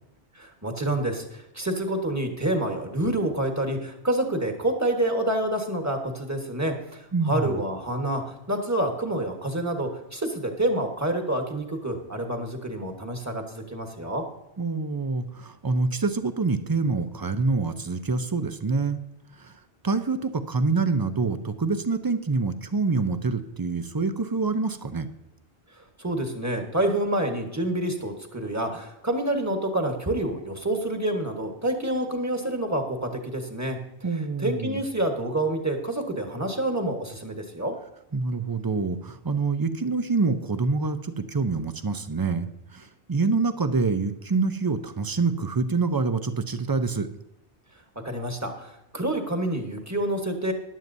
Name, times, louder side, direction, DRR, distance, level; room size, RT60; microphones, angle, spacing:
voice 1, 0.3-14.2 26.0-33.8 34.4-37.7 48.0-50.5, right 1 dB, 15° right, 3 dB, 1.3 m, -28 dB
voice 2, 7.1-7.6 14.6-19.0 19.3-19.5 19.8-25.1 34.0-34.8 38.1-47.1, right 4 dB, 30° right, 10 dB, 0.4 m, -26 dB
15.0 x 10.5 x 2.7 m, 0.89 s
omnidirectional pair, 1.1 m